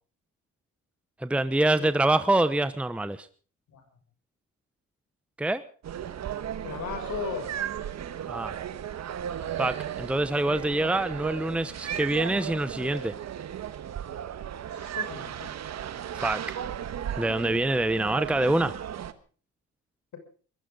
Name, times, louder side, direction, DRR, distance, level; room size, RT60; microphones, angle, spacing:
voice 1, 1.2-3.3 5.4-5.6 8.3-8.6 9.6-13.1 16.1-16.6 17.2-18.8, right 2 dB, 5° right, 13 dB, 0.9 m, -25 dB
sound 1, 5.8-19.1, right 9 dB, 60° right, 1.4 m, -35 dB
voice 2, 6.6-7.5 14.7-15.5, left 6 dB, 70° left, 6 dB, 6.7 m, -36 dB
22.0 x 15.5 x 3.9 m, 0.40 s
cardioid pair, 90°, 30 cm